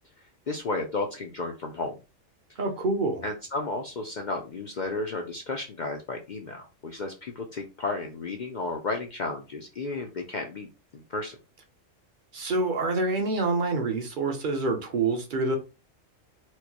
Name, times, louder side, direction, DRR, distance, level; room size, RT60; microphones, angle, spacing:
voice 1, 0.5-1.9 3.2-10.7 10.9-11.4, left 3 dB, 60° left, 0.5 m, -33 dB
voice 2, 2.6-3.2 12.3-15.6, right 3 dB, 45° right, 0.8 m, -26 dB
4.5 x 2.1 x 2.8 m
omnidirectional pair, 1.3 m